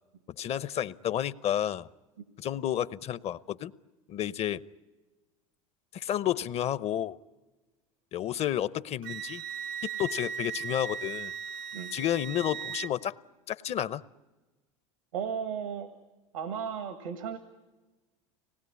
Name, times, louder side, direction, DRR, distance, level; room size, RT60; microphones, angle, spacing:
voice 1, 0.4-1.9 2.4-3.7 4.1-4.6 5.9-7.2 8.1-9.4 9.8-11.3 11.9-13.2 13.5-14.0, left 11 dB, 40° left, 18 dB, 0.7 m, -31 dB
Wind instrument woodwind instrument, 9.0-12.9, right 7 dB, 55° right, 0.7 m, -37 dB
voice 2, 15.1-15.9 16.3-17.4, right 7 dB, 85° right, 9 dB, 1.8 m, -34 dB
25.0 x 20.0 x 9.7 m, 1.2 s
hypercardioid pair, 95°, 17 cm